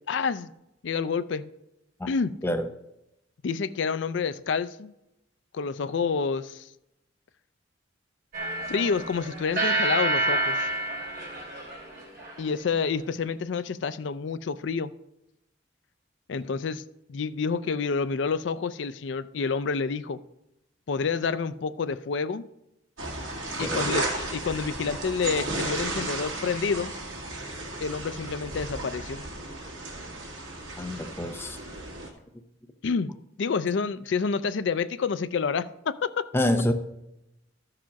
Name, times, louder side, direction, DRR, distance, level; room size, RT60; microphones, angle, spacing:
voice 1, 0.1-0.5 0.8-1.5 2.1-2.3 3.4-4.9 5.5-6.7 8.7-10.7 12.4-14.9 16.3-16.8 17.1-20.2 20.9-22.4 23.6-26.9 27.8-29.2 32.8-33.1 33.4-36.3, left 5 dB, 65° left, 13 dB, 0.4 m, -28 dB
sound 1, 8.3-12.6, right 2 dB, 50° right, 3.3 m, -29 dB
sound 2, 23.0-32.1, right 2 dB, 80° right, 2.0 m, -34 dB
voice 2, 23.6-23.9 30.8-31.6 36.3-36.7, left 1 dB, 10° left, 5 dB, 0.6 m, -27 dB
13.0 x 4.9 x 5.8 m, 0.86 s
head